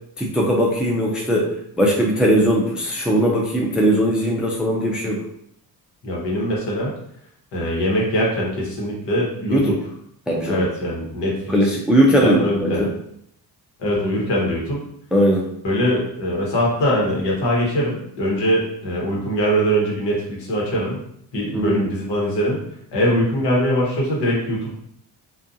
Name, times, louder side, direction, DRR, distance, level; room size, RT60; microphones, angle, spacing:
voice 1, 0.2-1.5 1.8-5.2 9.5-9.8 10.3-10.6 11.5-12.9 15.1-15.5 21.5-21.8, equal, ahead, -1 dB, 0.4 m, -19 dB
voice 2, 6.0-6.9 7.5-9.6 10.4-11.6 12.2-12.8 13.8-14.8 15.6-21.0 21.3-22.6 22.9-24.7, equal, 75° left, -3 dB, 1.1 m, -22 dB
2.5 x 2.4 x 2.5 m, 0.71 s
cardioid pair, 95°, 42 cm